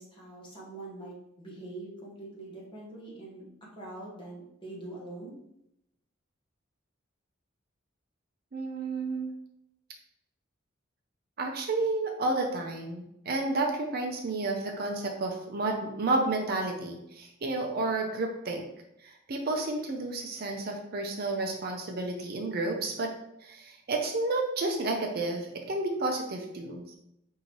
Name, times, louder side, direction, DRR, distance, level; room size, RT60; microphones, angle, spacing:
voice 1, 0.0-3.5 3.7-5.3, right 2 dB, 25° left, -5 dB, 1.2 m, -43 dB
voice 2, 8.5-9.3 11.4-18.7 19.0-23.1 23.4-26.9, right 2 dB, 50° right, 2 dB, 0.5 m, -31 dB
5.3 x 2.7 x 3.0 m, 0.81 s
head